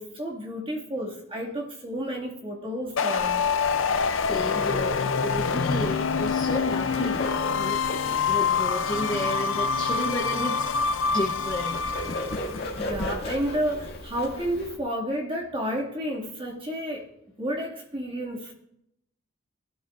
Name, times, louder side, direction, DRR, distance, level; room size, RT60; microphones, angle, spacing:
voice 1, 0.0-3.4 12.8-17.1 17.4-18.5, equal, 25° right, -2 dB, 2.2 m, -31 dB
sound 1, 3.0-12.6, left 5 dB, 65° left, 0.6 m, -26 dB
Bird, 3.1-14.8, left 1 dB, 45° left, 2.2 m, -37 dB
voice 2, 3.7-7.8 8.3-11.8, left 1 dB, 20° left, -1 dB, 0.9 m, -33 dB
20.5 x 12.5 x 2.6 m, 0.80 s
head